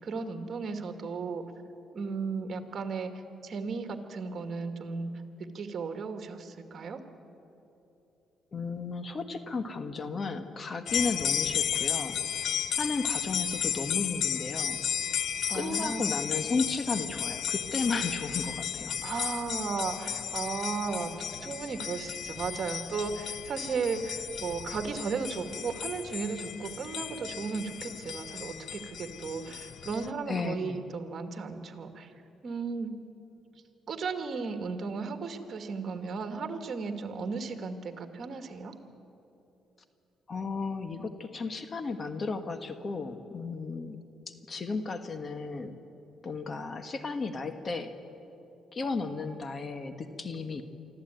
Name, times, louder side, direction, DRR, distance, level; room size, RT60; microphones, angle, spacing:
voice 1, 0.0-1.4 1.9-3.1 3.4-5.1 5.5-7.0 15.5-16.1 19.0-21.1 21.4-32.1 32.4-32.9 33.9-38.7, right 5 dB, 50° right, 7 dB, 2.0 m, -35 dB
voice 2, 8.5-12.4 12.7-14.8 15.5-19.0 30.3-30.8 40.3-44.0 44.3-45.7 46.2-47.9 48.7-50.6, left 4 dB, 40° left, 9 dB, 1.5 m, -34 dB
sound 1, 10.9-30.1, left 8 dB, 65° left, 0.7 m, -34 dB
24.0 x 14.0 x 9.1 m, 2.9 s
cardioid pair, 90°, 0 cm